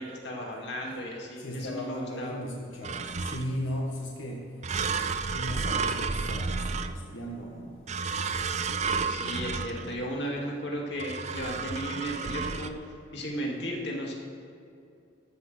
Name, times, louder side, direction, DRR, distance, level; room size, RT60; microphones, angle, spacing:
voice 1, 0.0-2.4 9.0-14.1, equal, 60° left, -1 dB, 2.1 m, -35 dB
voice 2, 1.4-4.5 5.3-7.7, equal, 90° left, -1 dB, 1.4 m, -36 dB
sound 1, 2.8-3.7 4.6-7.3 7.9-10.1 11.0-12.7, right 5 dB, 35° right, 0.4 m, -31 dB
13.5 x 6.0 x 6.5 m, 2.5 s
head